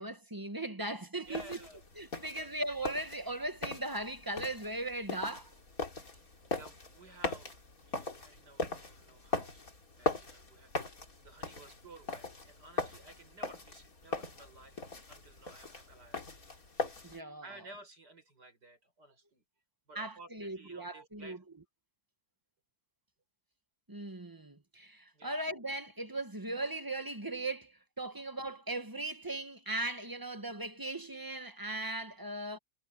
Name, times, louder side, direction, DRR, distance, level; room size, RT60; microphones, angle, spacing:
voice 1, 0.0-1.6 2.0-5.5 17.0-17.5 19.9-21.4 23.9-32.6, right 2 dB, 15° right, 1.0 m, -38 dB
sound 1, 1.2-17.2, left 3 dB, 55° left, 3.8 m, -40 dB
voice 2, 1.2-1.8 2.3-2.5 6.1-9.6 10.0-16.2 16.8-16.9 17.4-19.4 19.9-21.4 25.1-25.4, right 2 dB, 80° right, 6.6 m, -55 dB
omnidirectional pair, 1.8 m